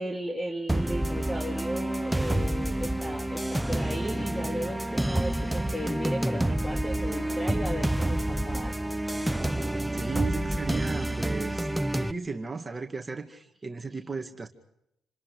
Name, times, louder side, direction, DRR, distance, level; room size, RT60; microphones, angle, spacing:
voice 1, 0.0-8.8, equal, 10° left, 1 dB, 3.2 m, -35 dB
sound 1, 0.7-12.1, right 1 dB, 5° right, 0.9 m, -28 dB
voice 2, 9.9-14.5, right 4 dB, 25° right, 4 dB, 2.2 m, -35 dB
28.5 x 26.0 x 5.2 m, 0.81 s
cardioid pair, 90°, 0 cm